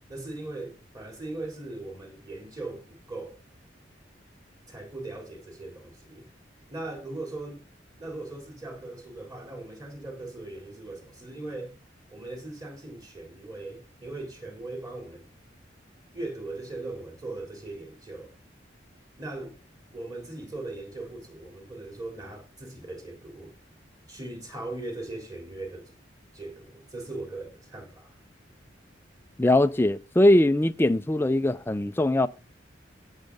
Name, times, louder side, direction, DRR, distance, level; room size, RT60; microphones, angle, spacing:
voice 1, 0.0-3.4 4.7-6.3 6.7-7.6 8.0-11.8 12.1-15.3 16.1-18.3 19.2-19.6 19.9-23.5 24.1-25.9 26.3-28.1, right 2 dB, 20° right, 3.7 m, -39 dB
voice 2, 29.4-32.3, left 1 dB, 15° left, 0.4 m, -21 dB
17.0 x 6.4 x 4.0 m
head